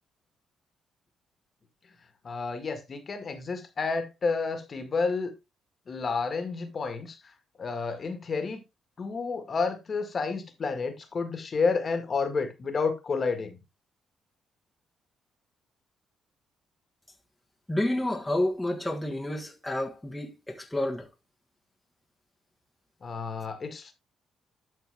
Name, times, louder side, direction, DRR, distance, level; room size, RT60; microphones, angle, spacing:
voice 1, 2.2-5.3 5.9-7.2 7.6-8.6 9.0-13.6 23.0-23.9, left 4 dB, 40° left, 1.8 m, -30 dB
voice 2, 17.7-21.1, left 1 dB, 5° left, 1.5 m, -29 dB
11.5 x 4.5 x 3.5 m
cardioid pair, 90°, 0 cm